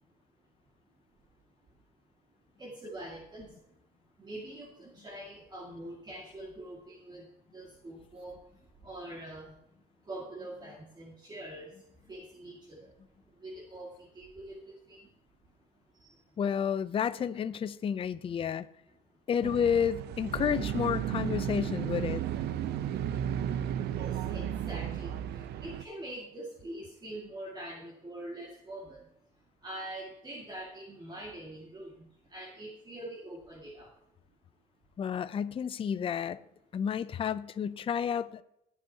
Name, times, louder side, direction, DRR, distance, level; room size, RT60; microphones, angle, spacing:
voice 1, 0.9-1.8 2.3-3.8 4.0-16.4 18.9-19.2 20.0-20.1 20.8-20.9 22.6-33.9, right 1 dB, 25° right, 2.0 m, -45 dB
voice 2, 16.4-18.7 19.3-22.2 35.0-36.4 36.7-38.4, left 7 dB, 35° left, 0.5 m, -30 dB
sound 1, 19.4-25.8, right 10 dB, 75° right, 0.8 m, -34 dB
20.0 x 7.2 x 2.8 m
cardioid pair, 110°, 17 cm